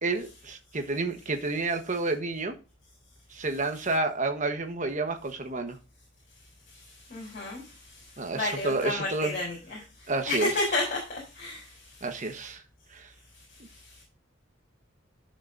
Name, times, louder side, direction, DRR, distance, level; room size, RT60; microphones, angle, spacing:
voice 1, 0.0-2.6 3.3-5.8 8.2-9.3 10.1-10.5 12.0-12.6 12.9-13.1, right 3 dB, 40° right, 1.2 m, -30 dB
voice 2, 6.7-12.0 12.4-12.5 13.5-14.0, left 2 dB, 40° left, 3.8 m, -33 dB
11.0 x 6.6 x 2.6 m
head